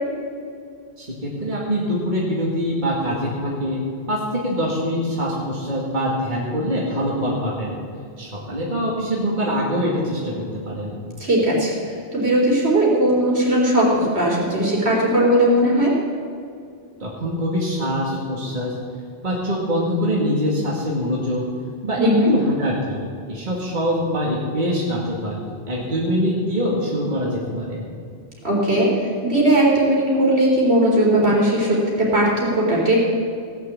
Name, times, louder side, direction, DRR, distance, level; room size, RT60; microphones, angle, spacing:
voice 1, 1.0-3.8 4.1-7.8 8.2-11.0 17.0-18.8 19.2-21.4 21.8-23.0 23.3-25.4 25.7-27.9, equal, 45° right, -4 dB, 2.3 m, -24 dB
voice 2, 11.2-11.8 12.1-15.9 22.0-22.3 28.4-33.0, right 1 dB, 75° right, -4 dB, 4.0 m, -18 dB
17.5 x 6.8 x 8.6 m, 2.2 s
omnidirectional pair, 1.1 m